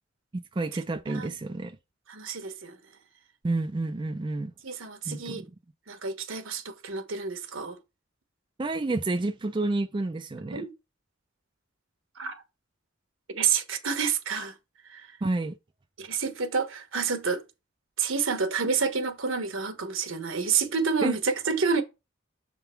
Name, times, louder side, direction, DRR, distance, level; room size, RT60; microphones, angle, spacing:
voice 1, 0.3-1.8 3.4-4.5 5.1-5.5 8.6-10.6 15.2-15.6 21.0-21.2, right 2 dB, 25° right, 0.4 m, -29 dB
voice 2, 2.1-2.8 4.6-5.4 5.9-7.8 10.5-10.7 12.2-12.4 13.3-14.5 14.9-15.1 16.0-17.4 18.0-21.8, right 5 dB, 80° right, 1.2 m, -29 dB
6.8 x 3.7 x 4.5 m
head